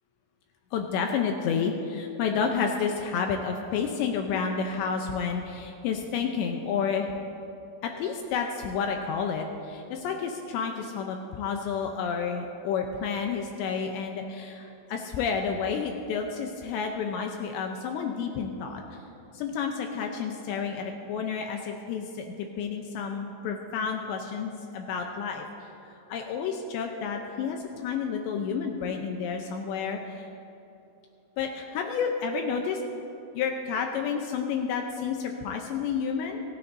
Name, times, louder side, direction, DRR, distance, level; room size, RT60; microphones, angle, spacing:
voice 1, 0.7-7.1 7.8-18.8 19.3-25.5 26.1-30.2 31.4-32.8 33.3-36.4, left 6 dB, 80° left, 3 dB, 2.6 m, -30 dB
25.5 x 13.0 x 2.7 m, 2.8 s
omnidirectional pair, 5.8 m